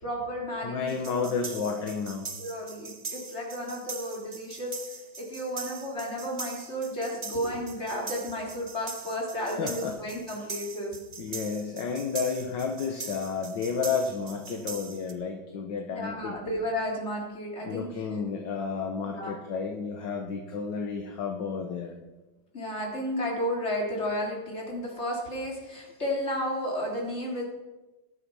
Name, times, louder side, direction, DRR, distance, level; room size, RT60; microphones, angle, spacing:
voice 1, 0.0-1.1 2.4-10.9 15.9-17.9 19.0-19.3 22.5-27.4, equal, 30° left, -3 dB, 4.0 m, -33 dB
voice 2, 0.6-2.2 9.4-9.9 11.2-16.4 17.6-22.0, left 5 dB, 60° left, 3 dB, 1.8 m, -31 dB
sound 1, 0.9-15.1, right 4 dB, 40° right, 0.6 m, -41 dB
19.0 x 8.4 x 5.6 m, 1.1 s
omnidirectional pair, 2.3 m